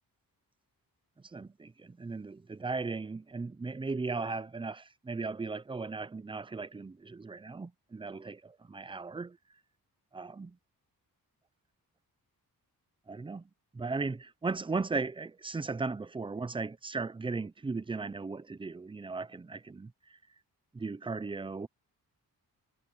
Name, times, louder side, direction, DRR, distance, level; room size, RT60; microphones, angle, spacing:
voice 1, 1.3-9.4 10.1-10.6 13.1-20.2 20.7-21.7, right 4 dB, 15° right, 0.5 m, -37 dB
wide cardioid pair, 160°, 37 cm